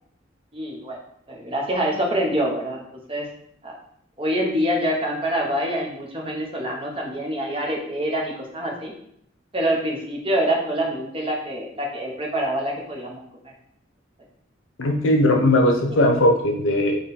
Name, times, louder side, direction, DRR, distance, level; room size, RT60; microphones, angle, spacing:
voice 1, 0.5-1.0 1.3-3.3 3.6-3.7 4.2-8.9 9.5-13.2, right 1 dB, 25° right, -1 dB, 0.8 m, -25 dB
voice 2, 14.8-17.0, left 1 dB, 85° left, 3 dB, 0.8 m, -18 dB
3.8 x 3.1 x 4.1 m, 0.70 s
head